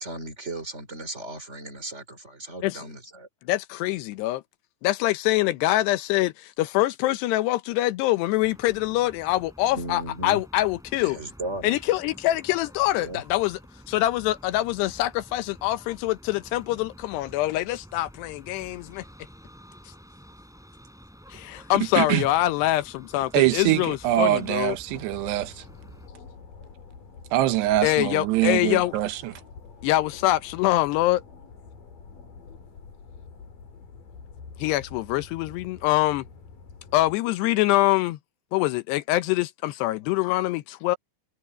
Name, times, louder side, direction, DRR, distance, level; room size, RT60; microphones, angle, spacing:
voice 1, 0.0-3.3 9.7-10.4 11.0-11.8 13.0-13.2, right 2 dB, 15° right, 3.4 m, -36 dB
voice 2, 3.5-4.4 4.8-11.2 11.6-13.6 13.9-19.0 21.3-24.8 27.8-28.9 29.8-31.2 34.6-36.3 36.9-38.2 38.5-41.0, left 16 dB, 85° left, 2.9 m, -24 dB
sound 1, 8.4-26.1, equal, ahead, 6.1 m, -49 dB
voice 3, 23.3-25.5 27.3-29.3, right 15 dB, 85° right, 3.1 m, -23 dB
sound 2, 24.9-37.2, left 5 dB, 55° left, 5.2 m, -46 dB
omnidirectional pair, 4.8 m